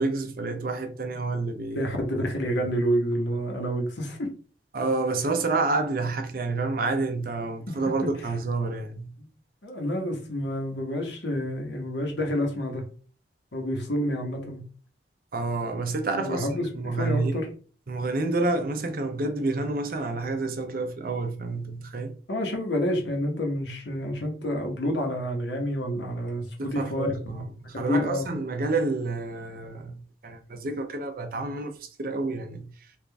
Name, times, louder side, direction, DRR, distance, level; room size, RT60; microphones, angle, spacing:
voice 1, 0.0-1.9 4.7-9.1 15.3-17.5 17.9-22.1 26.6-30.0 30.2-31.7 32.0-32.7, right 3 dB, 50° right, 0.6 m, -29 dB
voice 2, 1.7-4.3 9.2-9.3 9.6-12.8 13.5-14.6 16.1-17.5 22.3-27.4 27.7-28.3, equal, 75° left, 1.1 m, -28 dB
3.5 x 2.5 x 3.4 m
head